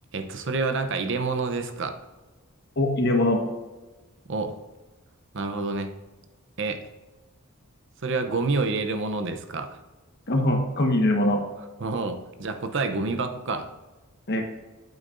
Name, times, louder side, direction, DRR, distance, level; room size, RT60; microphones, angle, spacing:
voice 1, 0.1-2.0 4.3-4.5 5.3-5.9 6.6-6.8 8.0-9.8 11.8-13.7, right 3 dB, 60° right, 7 dB, 0.7 m, -28 dB
voice 2, 2.8-3.4 10.3-11.4 14.3-14.4, left 1 dB, 50° left, 3 dB, 1.4 m, -22 dB
9.1 x 8.3 x 2.6 m, 1.2 s
head